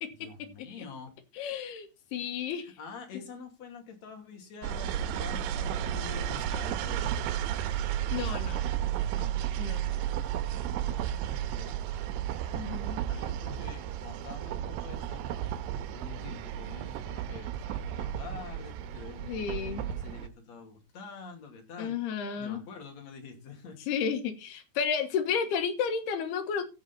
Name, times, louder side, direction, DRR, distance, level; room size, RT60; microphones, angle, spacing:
voice 1, 0.2-1.2 2.6-7.1 9.1-9.3 10.6-12.0 13.1-15.2 15.9-22.0 22.4-23.8, left 5 dB, 45° left, 3.5 m, -46 dB
voice 2, 1.4-2.7 8.1-8.8 9.6-9.9 12.5-13.0 19.3-19.9 21.8-22.6 23.9-26.6, left 6 dB, 75° left, 3.4 m, -32 dB
sound 1, 4.6-20.3, right 10 dB, 90° right, 2.9 m, -33 dB
15.0 x 6.5 x 4.2 m
omnidirectional pair, 4.7 m